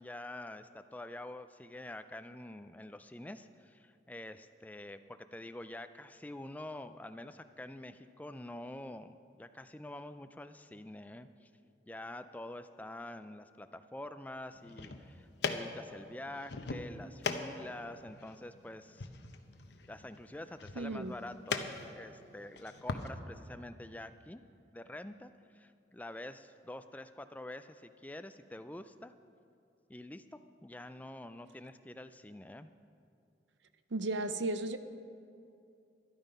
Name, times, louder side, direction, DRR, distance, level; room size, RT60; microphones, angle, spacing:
voice 1, 0.0-11.5 11.9-19.1 19.9-24.4 24.7-29.1 29.9-32.7, left 1 dB, 10° left, 10 dB, 0.3 m, -47 dB
sound 1, 14.5-23.1, left 4 dB, 70° left, 0.8 m, -41 dB
voice 2, 20.8-21.1 33.9-34.8, right 2 dB, 80° right, 10 dB, 0.7 m, -34 dB
12.5 x 12.0 x 5.4 m, 2.5 s
head